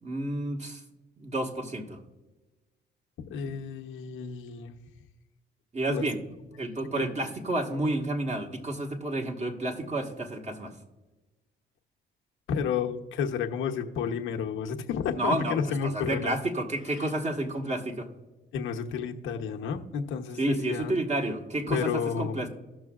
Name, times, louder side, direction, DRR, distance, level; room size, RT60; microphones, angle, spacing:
voice 1, 0.0-0.8 1.2-2.0 5.7-6.2 6.6-10.7 15.2-18.1 20.4-22.5, right 1 dB, 35° right, 2 dB, 1.5 m, -30 dB
voice 2, 3.3-4.7 5.9-6.1 6.6-7.1 7.7-7.9 12.5-16.4 17.0-17.1 18.5-20.9 21.7-22.5, left 7 dB, 85° left, 3 dB, 0.9 m, -31 dB
17.0 x 6.2 x 2.4 m, 1.1 s
cardioid pair, 90°, 20 cm